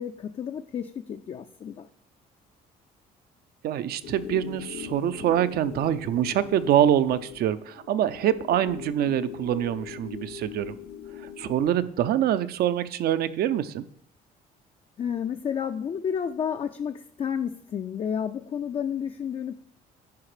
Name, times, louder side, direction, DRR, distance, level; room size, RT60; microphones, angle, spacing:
voice 1, 0.0-1.9 15.0-19.5, left 8 dB, 35° left, 7 dB, 0.4 m, -31 dB
voice 2, 3.6-10.7 11.4-13.9, right 11 dB, 65° right, 12 dB, 0.6 m, -25 dB
sound 1, 4.0-11.9, left 10 dB, 65° left, 0.8 m, -41 dB
10.5 x 5.0 x 4.9 m, 0.69 s
cardioid pair, 110°, 17 cm